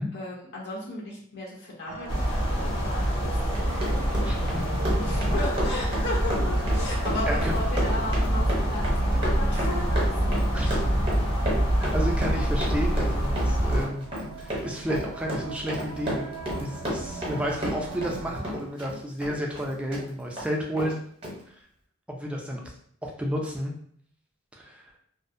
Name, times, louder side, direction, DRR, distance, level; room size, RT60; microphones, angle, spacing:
voice 1, 0.1-4.1 5.0-10.8, left 2 dB, 55° left, -4 dB, 0.5 m, -36 dB
sound 1, 1.9-18.4, right 2 dB, 80° right, 0.4 m, -40 dB
sound 2, 2.1-13.9, equal, 85° left, 1.1 m, -25 dB
Run, 3.4-18.2 18.4-20.0 20.4-20.5 20.8-20.9 21.2-21.3, equal, 25° right, 0.7 m, -32 dB
voice 2, 4.2-4.6 5.0-5.1 7.0-7.6 10.5-10.7 11.8-14.1 14.4-16.3 16.6-21.0 22.1-22.7 23.0-23.7 24.5-24.8, equal, 5° right, -1 dB, 0.3 m, -31 dB
2.5 x 2.1 x 2.5 m, 0.62 s
head